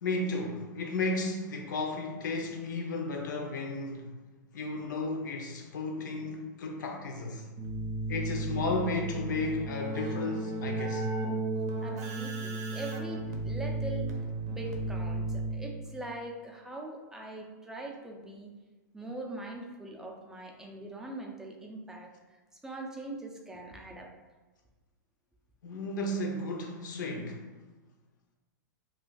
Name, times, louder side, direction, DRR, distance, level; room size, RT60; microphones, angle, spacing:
voice 1, 0.0-4.1 4.5-7.5 8.1-11.1 25.6-27.4, left 2 dB, 80° left, 2 dB, 0.6 m, -33 dB
Keyboard (musical), 7.6-15.9, right 2 dB, 55° right, 0.6 m, -34 dB
voice 2, 11.8-18.5 18.9-22.1 22.6-24.1, right 2 dB, 5° right, 0 dB, 0.4 m, -42 dB
2.4 x 2.4 x 3.8 m, 1.2 s
hypercardioid pair, 135°, 10 cm